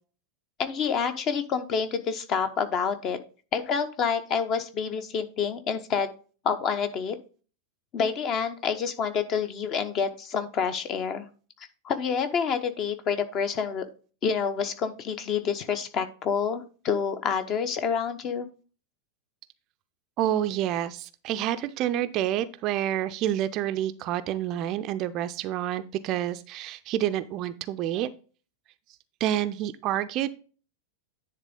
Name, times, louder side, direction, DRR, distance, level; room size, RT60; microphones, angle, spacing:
voice 1, 0.6-3.2 3.5-6.1 6.4-7.2 7.9-11.3 11.8-13.8 14.2-18.5, left 6 dB, 35° left, 9 dB, 0.9 m, -28 dB
voice 2, 20.2-28.1 29.2-30.3, right 12 dB, 40° right, 12 dB, 0.5 m, -28 dB
10.0 x 3.5 x 5.2 m, 0.37 s
figure-of-eight pair, 90°, 0 cm